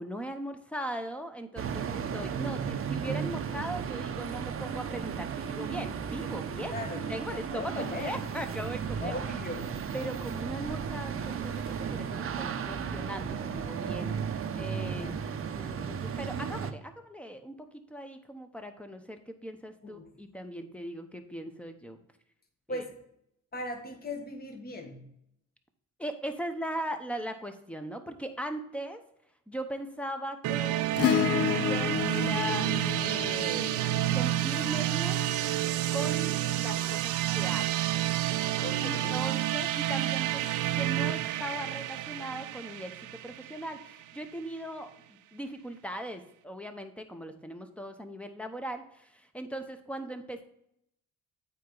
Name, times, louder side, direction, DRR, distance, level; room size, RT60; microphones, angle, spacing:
voice 1, 0.0-9.2 9.9-14.1 14.5-15.1 15.5-22.0 22.7-22.8 26.0-29.0 29.5-32.7 33.0-33.8 34.1-35.3 35.9-37.8 38.8-40.4 40.7-50.4, right 1 dB, 5° left, 7 dB, 0.9 m, -39 dB
sound 1, 1.6-16.7, right 7 dB, 45° right, 0.7 m, -35 dB
voice 2, 6.7-8.3 9.0-9.8 14.7-15.8 19.8-20.1 22.7-23.0 23.5-25.1 38.6-39.2, left 2 dB, 30° left, 4 dB, 1.4 m, -39 dB
sound 2, 30.4-44.2, right 13 dB, 85° right, 0.5 m, -30 dB
Acoustic guitar / Strum, 31.0-35.6 37.4-37.5, left 10 dB, 50° left, 0.5 m, -31 dB
8.4 x 4.7 x 3.9 m, 0.75 s
cardioid pair, 90°, 30 cm